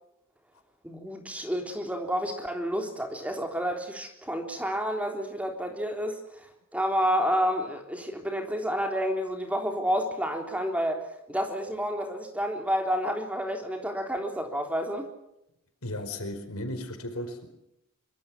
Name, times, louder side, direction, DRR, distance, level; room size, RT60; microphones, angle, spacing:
voice 1, 0.8-6.5 6.7-15.1, equal, 5° right, 3 dB, 3.7 m, -30 dB
voice 2, 15.8-17.5, left 1 dB, 80° left, 7 dB, 4.9 m, -35 dB
24.5 x 24.5 x 6.1 m, 0.82 s
head